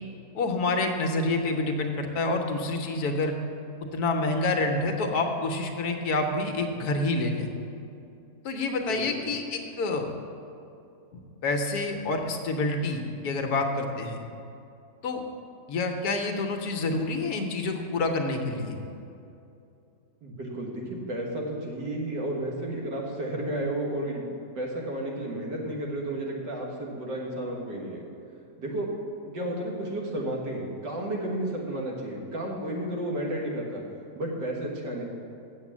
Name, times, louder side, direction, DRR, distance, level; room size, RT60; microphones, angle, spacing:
voice 1, 0.3-3.3 3.9-7.5 8.4-10.1 11.4-14.2 15.0-15.2 15.7-18.8, left 2 dB, 65° left, 4 dB, 1.3 m, -28 dB
voice 2, 8.9-9.3 20.2-24.2 24.6-28.0 28.6-28.9 29.3-33.8 34.2-35.0, right 1 dB, 85° right, -2 dB, 2.2 m, -32 dB
7.5 x 7.5 x 7.2 m, 2.6 s
omnidirectional pair, 1.8 m